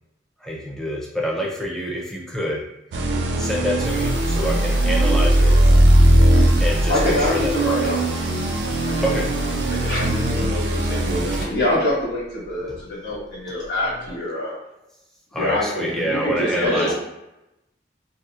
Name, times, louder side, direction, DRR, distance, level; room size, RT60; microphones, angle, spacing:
voice 1, 0.4-2.6 3.4-5.6 6.6-8.0 9.0-9.8 10.8-11.1 11.3-11.4 12.7-12.8 13.3-13.4 15.3-16.9, equal, 5° left, -4 dB, 0.4 m, -27 dB
sound 1, 2.9-11.4, right 1 dB, 80° right, 0.3 m, -19 dB
sound 2, 3.8-14.2, left 1 dB, 60° left, 0.5 m, -38 dB
voice 2, 6.9-8.0 8.8-9.1 9.7-14.6 15.4-16.9, left 1 dB, 75° left, -6 dB, 1.2 m, -25 dB
voice 3, 13.7-14.1 16.4-16.9, equal, 55° right, -3 dB, 0.8 m, -32 dB
2.7 x 2.0 x 2.4 m, 0.91 s
head